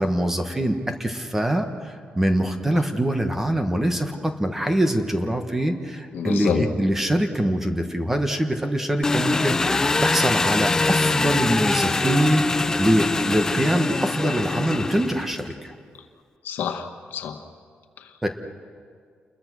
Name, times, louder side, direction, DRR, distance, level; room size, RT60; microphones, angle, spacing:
voice 1, 0.0-15.7 18.2-18.3, right 1 dB, 10° right, 5 dB, 1.3 m, -24 dB
voice 2, 6.1-6.7 16.4-17.4 18.0-18.1, left 7 dB, 80° left, 5 dB, 1.7 m, -28 dB
Engine, 9.0-15.5, left 3 dB, 15° left, 0.5 m, -23 dB
29.0 x 21.5 x 6.2 m, 2.1 s
wide cardioid pair, 175°, 3 cm